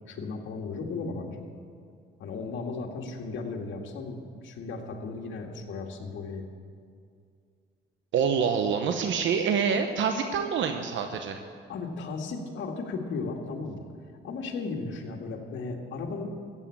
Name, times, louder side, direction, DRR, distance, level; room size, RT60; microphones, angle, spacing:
voice 1, 0.1-1.4 2.2-6.4 11.7-13.9 14.2-16.3, left 4 dB, 75° left, 1 dB, 2.0 m, -35 dB
voice 2, 8.1-11.4, right 6 dB, 70° right, 6 dB, 1.0 m, -26 dB
14.5 x 8.6 x 8.5 m, 2.3 s
cardioid pair, 90°, 20 cm